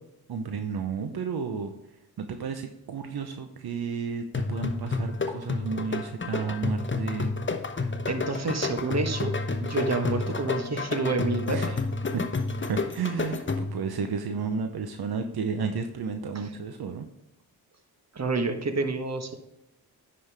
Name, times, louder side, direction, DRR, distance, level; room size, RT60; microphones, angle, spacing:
voice 1, 0.3-1.7 2.2-7.3 11.5-11.8 12.1-12.2 12.7-17.1, right 5 dB, 75° right, 6 dB, 0.8 m, -32 dB
sound 1, 4.3-13.9, left 3 dB, 30° left, 1.0 m, -30 dB
voice 2, 8.1-9.3 9.6-11.8 16.3-16.5 18.1-19.4, right 3 dB, 40° right, 7 dB, 1.3 m, -28 dB
9.6 x 5.5 x 3.4 m, 0.87 s
cardioid pair, 55°, 39 cm